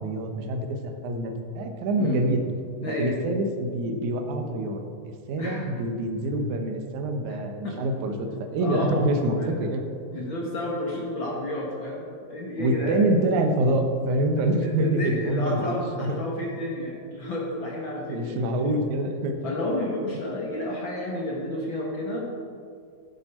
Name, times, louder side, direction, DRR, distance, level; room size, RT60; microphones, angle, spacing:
voice 1, 0.0-2.4 3.0-4.8 5.3-8.3 8.5-9.9 12.6-16.2 18.1-19.4, right 1 dB, 65° right, 4 dB, 2.1 m, -26 dB
voice 2, 2.8-3.2 5.4-5.7 7.3-7.4 7.6-7.7 8.6-9.0 9.3-9.5 10.1-13.0 14.6-18.4 19.4-22.3, left 1 dB, 50° left, -3 dB, 1.5 m, -31 dB
12.0 x 11.0 x 4.4 m, 2.3 s
omnidirectional pair, 4.3 m